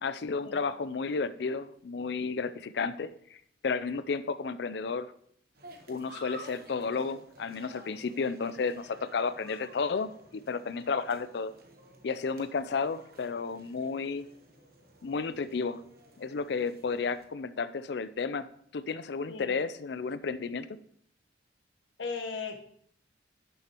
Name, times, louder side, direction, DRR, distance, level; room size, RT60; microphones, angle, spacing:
voice 1, 0.0-5.1 5.9-11.5 12.0-14.2 15.0-15.8 16.2-18.5 18.7-20.7, left 4 dB, 60° left, 15 dB, 0.4 m, -32 dB
sound 1, 5.6-17.2, right 1 dB, 50° right, 1.1 m, -53 dB
voice 2, 22.0-22.6, left 4 dB, 80° left, 5 dB, 1.1 m, -36 dB
11.0 x 6.4 x 3.0 m, 0.65 s
head